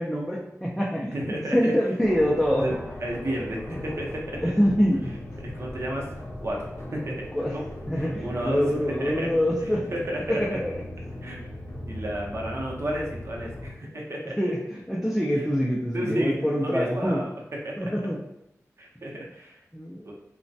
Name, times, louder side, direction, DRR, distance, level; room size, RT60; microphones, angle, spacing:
voice 1, 0.0-1.1 1.5-2.6 3.7-3.8 4.4-5.1 7.3-7.5 7.9-9.9 10.3-10.7 13.9-14.0 14.4-17.2 17.8-18.2 19.7-20.1, equal, 5° left, -4 dB, 0.5 m, -25 dB
voice 2, 1.1-1.6 2.6-2.7 3.0-4.5 5.4-6.1 6.4-7.3 7.5-7.6 7.9-8.6 9.0-9.3 9.9-10.4 11.2-11.5 11.9-14.4 15.9-17.2 17.6-18.1 18.8-19.6 20.0-20.1, right 1 dB, 50° right, -2 dB, 0.7 m, -32 dB
sound 1, 2.0-13.7, left 1 dB, 50° left, 0.7 m, -39 dB
3.1 x 2.1 x 2.6 m, 0.81 s
wide cardioid pair, 60°, 6 cm